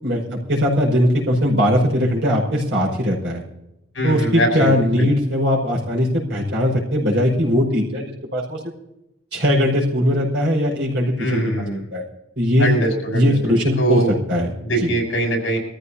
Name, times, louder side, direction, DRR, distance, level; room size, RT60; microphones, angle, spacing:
voice 1, 0.0-3.4 4.0-8.6 9.3-11.5 11.9-12.0 12.4-12.8 13.1-14.0 14.3-14.5 14.8-14.9, equal, 60° right, -2 dB, 5.3 m, -19 dB
voice 2, 3.9-5.1 11.2-11.9 12.6-14.1 14.6-15.6, right 1 dB, 70° left, 0 dB, 6.8 m, -22 dB
23.5 x 15.0 x 2.8 m, 0.85 s
head